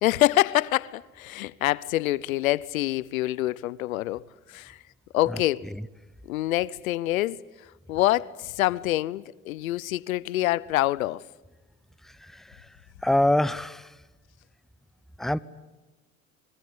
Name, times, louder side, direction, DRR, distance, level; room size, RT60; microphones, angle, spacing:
voice 1, 0.0-4.2 4.5-4.8 5.1-5.7 6.2-11.3, left 16 dB, 80° left, 0.8 m, -26 dB
voice 2, 12.0-12.7 13.0-13.9 15.2-15.4, left 1 dB, ahead, 0.9 m, -25 dB
26.0 x 22.5 x 9.7 m
hypercardioid pair, 75°, 40 cm